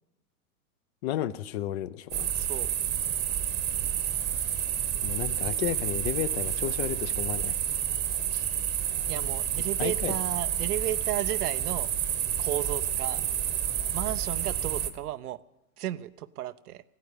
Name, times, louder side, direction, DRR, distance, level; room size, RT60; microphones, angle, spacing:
voice 1, 1.0-2.3 5.0-7.6 9.8-10.1, left 12 dB, 45° left, 15 dB, 0.7 m, -32 dB
sound 1, 2.1-14.9, right 10 dB, 20° right, 0.9 m, -29 dB
voice 2, 2.3-2.7 8.3-8.4 9.1-11.9 12.4-13.2 13.9-15.4 15.8-16.8, right 13 dB, 85° right, 11 dB, 0.7 m, -34 dB
15.0 x 9.3 x 8.4 m, 0.95 s
hypercardioid pair, 135°, 44 cm